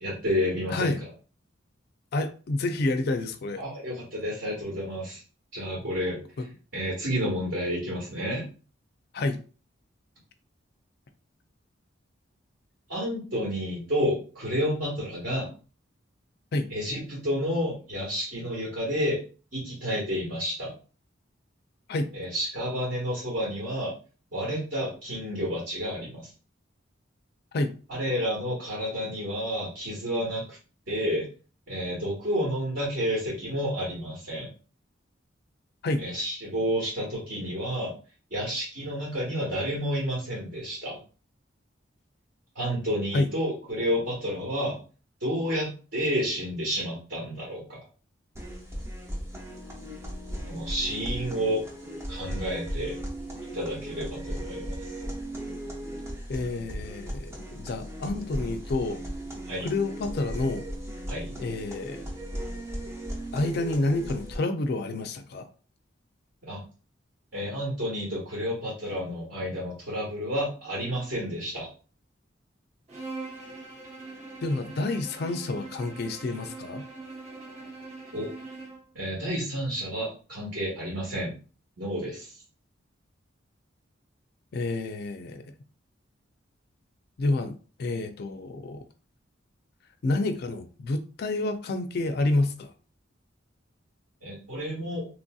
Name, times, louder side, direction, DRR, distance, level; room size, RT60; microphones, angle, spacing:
voice 1, 0.0-0.9 3.6-5.2 5.5-6.2 6.7-8.4 12.9-15.5 16.7-19.2 19.5-20.7 22.1-23.9 24.3-26.3 27.9-30.6 30.9-31.3 31.7-34.5 36.0-37.9 38.3-41.0 42.5-44.8 45.2-47.6 50.5-51.6 52.1-53.0 53.5-54.7 59.4-59.7 61.1-61.3 66.5-66.6 67.3-71.7 78.1-78.3 78.9-81.3 81.8-82.3 94.2-95.1, equal, 60° right, 1.3 m, -30 dB
voice 2, 0.7-1.0 2.1-3.6 6.4-6.5 9.1-9.4 16.5-16.7 21.9-22.1 27.5-27.7 35.8-36.0 43.1-43.3 56.3-59.0 59.6-60.6 61.4-62.0 63.3-65.5 74.4-76.8 84.5-85.4 87.2-88.8 90.0-92.7, left 2 dB, 55° left, 0.4 m, -29 dB
sound 1, 48.3-64.4, right 1 dB, 15° right, 0.6 m, -37 dB
Bowed string instrument, 72.9-78.9, right 3 dB, 35° right, 1.0 m, -42 dB
3.1 x 2.6 x 2.3 m
head